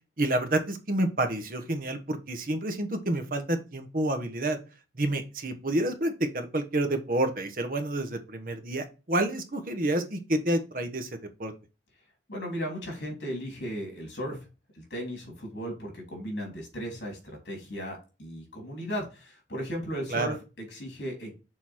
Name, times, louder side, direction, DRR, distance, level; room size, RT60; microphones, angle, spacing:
voice 1, 0.2-4.6 4.9-11.5 20.1-20.3, right 1 dB, 50° right, 7 dB, 1.0 m, -29 dB
voice 2, 12.3-14.4 14.7-21.3, equal, 75° left, 1 dB, 3.3 m, -36 dB
6.5 x 3.9 x 4.4 m, 0.31 s
head